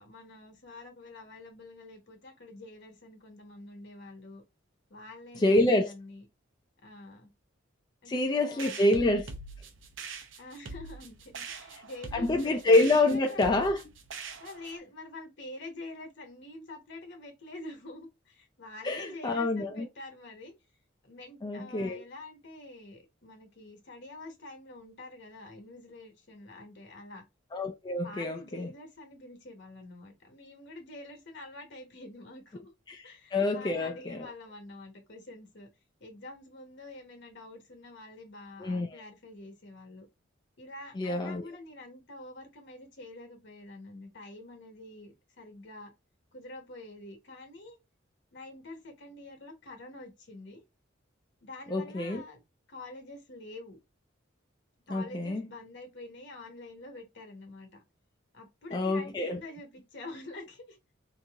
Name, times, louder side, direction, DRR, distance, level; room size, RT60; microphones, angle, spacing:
voice 1, 0.0-4.4 4.9-6.3 6.8-7.3 8.0-8.8 10.4-12.5 12.9-13.5 14.4-20.5 21.0-27.2 28.0-32.7 33.0-35.7 36.0-40.1 40.6-45.9 46.3-47.8 48.3-50.6 51.4-52.4 52.7-53.8 54.9-57.8 58.3-60.8, left 2 dB, 60° left, 1.2 m, -47 dB
voice 2, 5.4-5.9 8.1-9.3 12.1-13.8 18.8-19.9 21.4-22.0 27.5-28.7 33.1-34.3 38.6-39.0 41.0-41.5 51.7-52.2 54.9-55.4 58.7-59.4, left 2 dB, 20° left, 0.3 m, -27 dB
sound 1, 8.6-14.8, right 4 dB, 70° right, 0.7 m, -43 dB
2.9 x 2.7 x 3.4 m
head